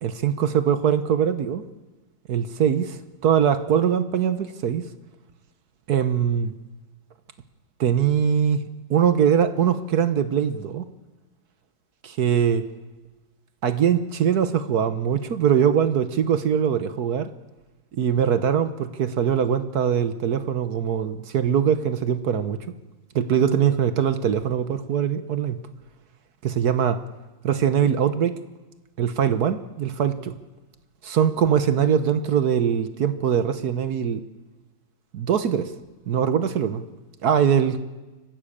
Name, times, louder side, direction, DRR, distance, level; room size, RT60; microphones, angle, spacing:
voice 1, 0.0-1.6 2.3-3.0 3.2-4.9 5.9-6.5 7.8-8.6 8.9-10.9 12.0-12.6 13.6-17.3 17.9-22.7 23.1-25.6 26.4-27.0 27.4-28.4 29.0-30.3 31.0-34.2 35.1-35.7 36.1-36.8 37.2-37.8, right 8 dB, 60° right, 12 dB, 1.4 m, -22 dB
24.0 x 15.0 x 8.7 m, 1.1 s
omnidirectional pair, 2.1 m